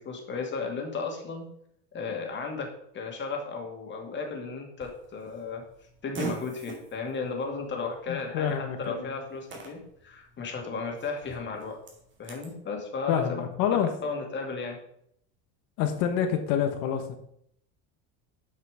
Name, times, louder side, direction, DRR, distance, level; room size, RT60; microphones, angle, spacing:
voice 1, 0.0-1.5 1.9-5.6 6.0-11.8 12.2-13.4 14.0-14.8, left 4 dB, 30° left, 2 dB, 2.2 m, -34 dB
Fart, 4.8-12.5, right 3 dB, 30° right, 2.6 m, -44 dB
voice 2, 8.1-9.2 13.1-13.9 15.8-17.2, left 8 dB, 65° left, 6 dB, 1.4 m, -27 dB
8.5 x 5.7 x 4.9 m, 0.71 s
supercardioid pair, 130°, 36 cm